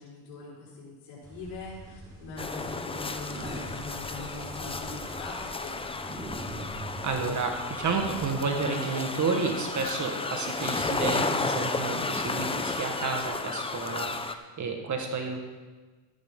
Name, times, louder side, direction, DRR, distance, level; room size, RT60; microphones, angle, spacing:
voice 1, 0.0-6.0, left 3 dB, 80° left, -8 dB, 4.5 m, -42 dB
sound 1, 1.2-8.3, right 1 dB, 10° right, 4.6 m, -43 dB
sound 2, 2.4-14.3, left 3 dB, 10° left, 0.6 m, -33 dB
voice 2, 7.0-15.4, right 4 dB, 40° right, 4 dB, 1.6 m, -31 dB
13.5 x 11.0 x 3.8 m, 1.3 s
supercardioid pair, 100°, 46 cm